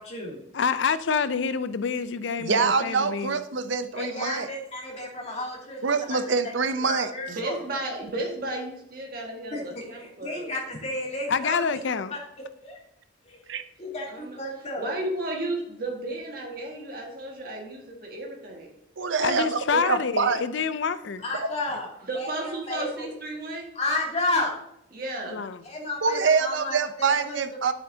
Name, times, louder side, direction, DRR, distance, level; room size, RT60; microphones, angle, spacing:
voice 1, 0.0-0.4 3.9-6.5 6.8-7.5 9.5-11.8 12.1-12.2 12.6-12.8 13.2-13.4 13.8-14.9 21.2-23.1 23.7-24.5 25.6-27.4, left 2 dB, 35° left, -3 dB, 2.6 m, -32 dB
voice 2, 0.5-3.4 11.3-12.1 19.2-21.2 25.3-25.6, left 5 dB, 65° left, 14 dB, 0.5 m, -27 dB
voice 3, 2.4-4.5 5.8-7.1 13.5-13.6 19.0-20.4 21.4-21.5 26.0-27.7, right 5 dB, 70° right, 10 dB, 0.7 m, -25 dB
voice 4, 7.3-10.5 14.1-14.4 14.8-18.7 22.0-23.7 24.9-25.4, right 1 dB, 50° right, -1 dB, 1.8 m, -33 dB
10.0 x 8.0 x 2.8 m, 0.77 s
head